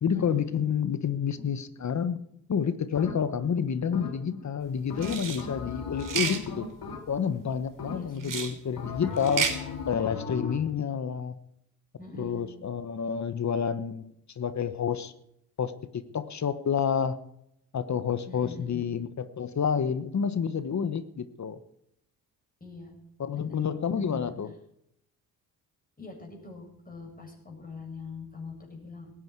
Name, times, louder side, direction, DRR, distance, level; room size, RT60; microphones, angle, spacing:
voice 1, 0.0-2.2 2.5-6.6 7.1-9.5 9.9-11.3 12.2-15.1 15.6-17.2 17.7-21.6 23.2-24.5, left 7 dB, 45° left, 12 dB, 1.2 m, -29 dB
sound 1, 3.0-3.5 3.9-4.5 4.9-7.4 7.8-8.3 8.8-10.7, left 5 dB, 65° left, 3.2 m, -38 dB
sound 2, 5.0-5.4 6.0-6.4 8.2-8.5 9.2-9.6, right 7 dB, 55° right, 3.3 m, -30 dB
voice 2, 6.3-6.6 7.9-8.4 12.0-12.5 18.3-18.8 22.6-22.9 23.3-23.6 23.9-24.3 26.0-29.1, left 4 dB, 20° left, 1 dB, 7.7 m, -42 dB
18.0 x 14.5 x 4.7 m, 0.76 s
cardioid pair, 75°, 38 cm